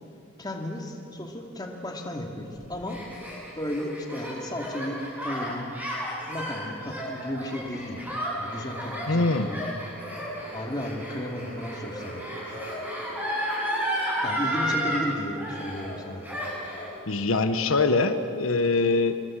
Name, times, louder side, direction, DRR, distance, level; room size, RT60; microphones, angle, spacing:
voice 1, 0.4-3.0 3.5-5.7 6.3-9.6 10.5-12.6 14.2-16.3, left 1 dB, 20° left, 2 dB, 2.4 m, -34 dB
Gasp, 2.6-15.0 15.4-16.9, equal, 10° right, 7.5 m, -32 dB
sound 1, 8.3-17.6, equal, 65° right, 8.0 m, -43 dB
voice 2, 9.1-9.6 17.1-19.2, left 3 dB, 80° left, 9 dB, 1.1 m, -23 dB
27.0 x 22.5 x 7.5 m, 2.5 s
head